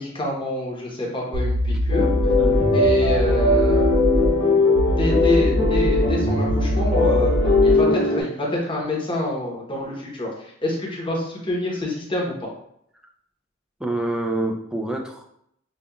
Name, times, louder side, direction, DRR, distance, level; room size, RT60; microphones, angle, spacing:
voice 1, 0.0-2.1 2.7-4.5 5.0-7.3 7.6-12.5, left 1 dB, 25° left, -3 dB, 0.9 m, -27 dB
sound 1, 1.3-4.3 4.8-7.8, right 1 dB, 80° right, 0.5 m, -23 dB
sound 2, 1.9-8.2, left 3 dB, 65° left, 1.5 m, -20 dB
voice 2, 2.4-2.7 13.8-15.3, right 2 dB, 5° right, 2 dB, 0.4 m, -27 dB
5.2 x 2.4 x 2.3 m, 0.72 s
head